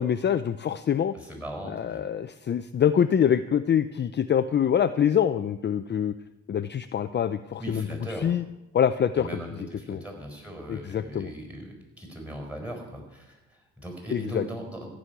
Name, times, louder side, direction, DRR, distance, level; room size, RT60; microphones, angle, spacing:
voice 1, 0.0-1.1 1.6-6.1 6.5-7.9 8.2-8.4 8.7-9.3 9.9-10.0 10.7-11.3 14.1-14.4, left 8 dB, 35° left, 10 dB, 0.5 m, -25 dB
voice 2, 1.1-2.0 7.6-8.3 9.1-14.9, right 1 dB, 5° right, 3 dB, 4.7 m, -39 dB
14.5 x 6.3 x 9.6 m, 1.0 s
cardioid pair, 90°, 30 cm